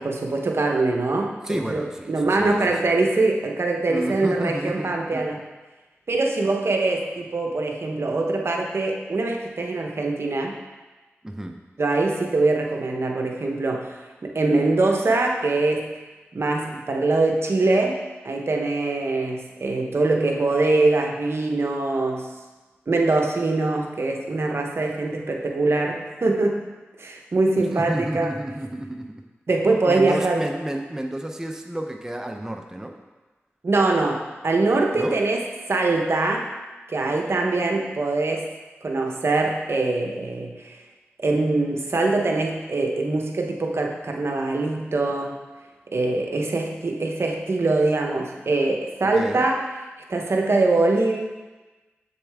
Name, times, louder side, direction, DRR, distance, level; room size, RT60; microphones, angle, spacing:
voice 1, 0.0-1.8 2.1-5.4 6.1-10.5 11.8-13.9 14.2-15.9 16.3-18.0 18.2-22.3 22.9-26.6 27.0-28.3 29.5-30.4 33.6-36.5 36.9-38.5 38.8-40.7 41.2-45.4 45.9-49.6 50.1-51.2, right 2 dB, 60° right, 1 dB, 1.0 m, -23 dB
voice 2, 1.4-2.6 2.9-3.0 3.9-5.2 11.2-11.6 27.7-29.2 29.8-33.0 34.9-35.2 49.0-49.5, right 1 dB, 10° right, 3 dB, 0.6 m, -31 dB
7.3 x 6.9 x 3.5 m, 1.2 s
cardioid pair, 55°, 5 cm